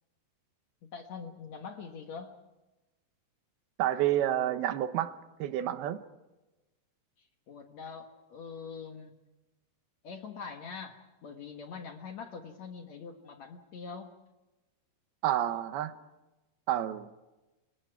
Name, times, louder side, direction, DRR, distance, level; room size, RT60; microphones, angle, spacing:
voice 1, 0.9-2.4 7.2-9.1 10.0-14.1, left 5 dB, 60° left, 5 dB, 2.1 m, -44 dB
voice 2, 3.8-6.0 15.2-15.9 16.7-17.1, right 12 dB, 80° right, 10 dB, 2.9 m, -29 dB
28.5 x 25.0 x 4.7 m, 1.1 s
omnidirectional pair, 4.6 m